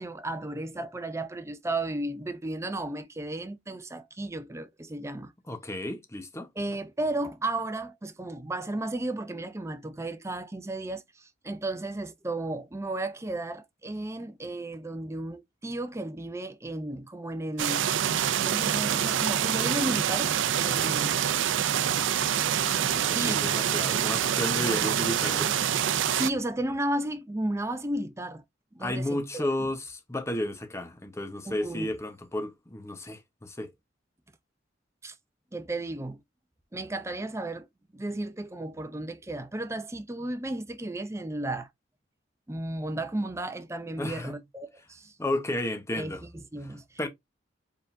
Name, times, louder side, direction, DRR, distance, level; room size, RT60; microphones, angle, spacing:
voice 1, 0.0-5.3 6.6-17.8 18.4-21.2 23.0-23.5 24.6-24.9 26.1-28.4 28.7-29.7 31.5-31.9 35.0-35.1 35.5-36.2 36.7-37.7 37.9-41.7 42.5-45.1 46.0-47.1, right 1 dB, 15° right, 0.6 m, -34 dB
voice 2, 5.5-6.5 22.9-25.5 28.8-33.7 44.0-44.4 45.2-46.2 47.0-47.1, left 1 dB, 15° left, 1.0 m, -32 dB
sound 1, 17.6-26.3, right 9 dB, 80° right, 0.4 m, -26 dB
4.6 x 3.7 x 2.6 m
head